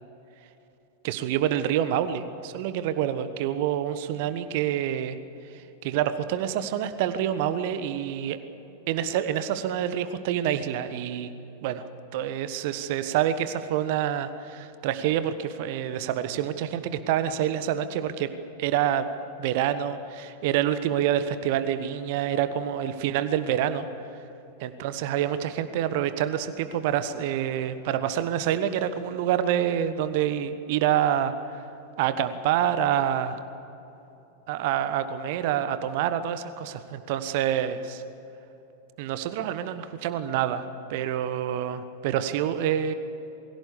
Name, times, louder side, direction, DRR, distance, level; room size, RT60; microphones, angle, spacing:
voice 1, 1.0-5.2 5.5-8.4 8.9-11.3 11.6-11.9 12.1-18.3 18.6-19.1 19.4-23.9 24.6-31.6 32.0-33.4 34.5-38.0 39.0-40.6 40.9-42.9, right 10 dB, 50° right, 12 dB, 1.2 m, -27 dB
22.5 x 16.5 x 8.4 m, 3.0 s
figure-of-eight pair, 90°, 0 cm